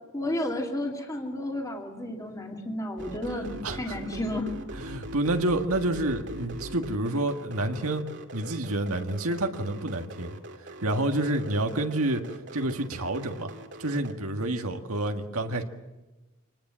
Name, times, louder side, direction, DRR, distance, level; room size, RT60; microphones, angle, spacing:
voice 1, 0.1-4.5, left 1 dB, 15° left, 1 dB, 2.4 m, -32 dB
sound 1, 3.0-14.1, right 1 dB, 55° right, 2.3 m, -41 dB
voice 2, 3.6-4.0 4.8-8.0 8.3-13.5 13.8-15.6, right 1 dB, 75° right, 5 dB, 1.8 m, -29 dB
26.5 x 20.0 x 7.5 m, 1.1 s
head